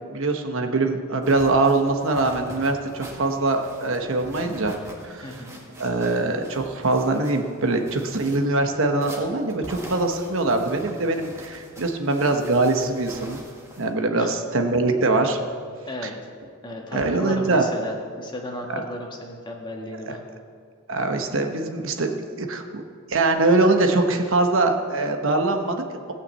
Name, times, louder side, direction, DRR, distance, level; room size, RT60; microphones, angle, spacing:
voice 1, 0.0-4.8 5.0-5.1 5.8-13.4 13.8-15.4 16.9-17.6 20.9-22.8 23.1-26.1, right 2 dB, 65° right, 5 dB, 1.1 m, -23 dB
sound 1, 1.2-13.9, right 1 dB, 15° right, 1.8 m, -43 dB
voice 2, 5.2-5.5 14.1-14.3 15.9-16.3 16.6-20.2, left 1 dB, 20° left, 0 dB, 1.6 m, -34 dB
17.0 x 5.8 x 8.2 m, 2.2 s
head